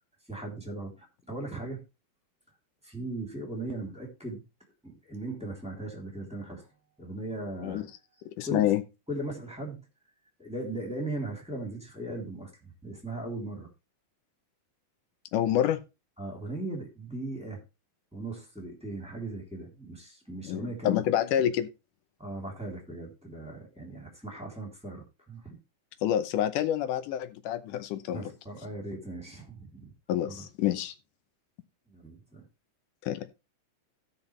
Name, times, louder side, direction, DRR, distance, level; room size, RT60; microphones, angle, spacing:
voice 1, 0.3-1.8 2.8-4.4 4.8-6.7 7.0-7.9 8.4-8.6 9.1-9.9 10.4-12.5 12.8-13.7 16.2-17.6 18.1-21.0 22.2-25.6 28.1-29.9 30.3-30.5 31.9-32.4, right 2 dB, ahead, 2.9 m, -38 dB
voice 2, 8.4-8.8 15.3-15.8 20.4-21.7 26.0-28.3 30.1-30.9 33.0-33.3, left 11 dB, 85° left, 2.4 m, -27 dB
16.5 x 5.8 x 3.2 m
omnidirectional pair, 3.6 m